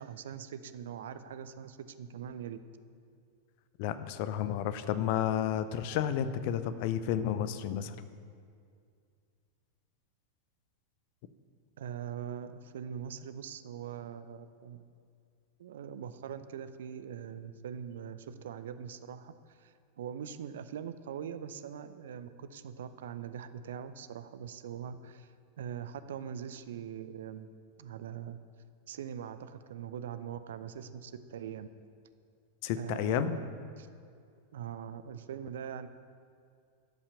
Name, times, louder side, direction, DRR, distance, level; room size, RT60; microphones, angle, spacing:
voice 1, 0.0-2.6 11.8-14.8 15.6-27.5 27.8-28.4 28.9-31.7 32.7-33.5 33.8-33.9 34.5-35.9, right 8 dB, 60° right, 12 dB, 0.5 m, -42 dB
voice 2, 3.8-7.9 32.6-33.4, left 10 dB, 45° left, 12 dB, 0.5 m, -31 dB
12.0 x 5.7 x 6.9 m, 2.3 s
figure-of-eight pair, 90°, 0 cm